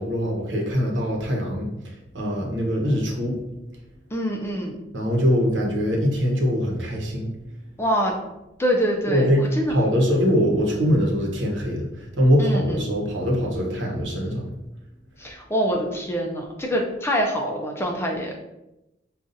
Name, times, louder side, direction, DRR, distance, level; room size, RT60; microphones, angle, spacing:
voice 1, 0.0-3.4 4.9-7.3 9.1-14.5, equal, 90° right, -1 dB, 0.9 m, -23 dB
voice 2, 4.1-4.8 7.8-8.1 8.6-9.7 12.4-12.9 15.2-18.4, equal, 15° left, 0 dB, 0.4 m, -25 dB
5.3 x 2.4 x 2.6 m, 0.94 s
head